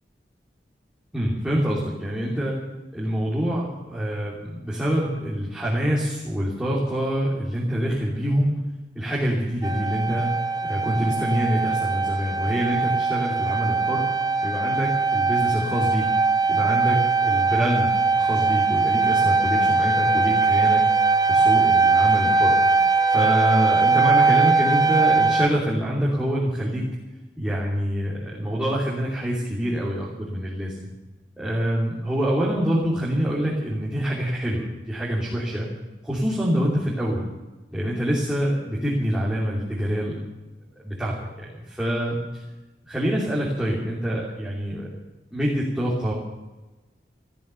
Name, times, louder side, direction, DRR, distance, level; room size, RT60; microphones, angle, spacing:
voice 1, 1.1-2.6 2.9-8.6 8.9-10.3 10.6-14.0 14.4-16.1 16.5-17.9 18.1-20.8 21.3-22.5 23.1-26.8 27.4-30.9 31.4-35.7 36.0-37.2 37.7-40.2 40.8-42.2 42.8-45.0 45.3-46.1, equal, 5° right, -8 dB, 3.0 m, -25 dB
sound 1, 9.6-25.5, right 4 dB, 20° right, 0.5 m, -21 dB
14.0 x 13.5 x 6.9 m, 1.1 s
head